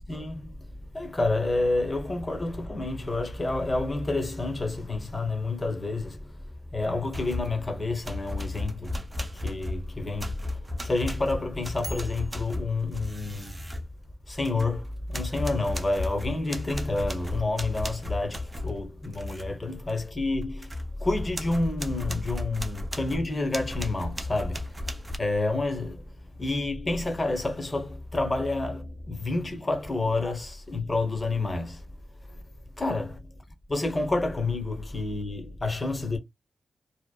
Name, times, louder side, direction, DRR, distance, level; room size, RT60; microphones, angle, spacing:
voice 1, 0.1-0.7 0.9-6.4 6.7-9.0 9.3-13.6 14.3-24.8 25.2-31.8 32.3-32.4 32.8-33.2 33.7-36.2, left 2 dB, 25° left, 0.9 m, -29 dB
sound 1, 7.1-7.6 8.0-14.8 15.1-19.5 19.9-20.0 20.4-25.2, left 2 dB, 20° right, 0.5 m, -34 dB
2.9 x 2.0 x 2.2 m
cardioid pair, 90°, 0 cm